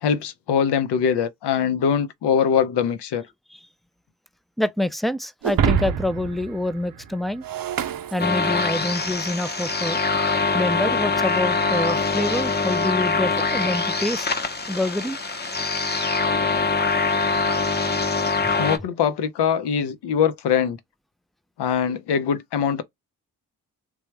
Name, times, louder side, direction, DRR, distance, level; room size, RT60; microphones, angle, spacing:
voice 1, 0.0-3.2 18.6-20.8 21.6-22.8, left 7 dB, 70° left, 0.7 m, -22 dB
voice 2, 4.6-7.4 8.1-10.0 10.5-14.3 14.7-15.2, left 1 dB, ahead, 0.4 m, -26 dB
Shatter, 5.4-8.9, right 7 dB, 55° right, 0.6 m, -27 dB
sound 1, 8.2-18.8, left 4 dB, 25° left, 0.8 m, -23 dB
3.3 x 2.3 x 3.2 m
supercardioid pair, 40°, 42 cm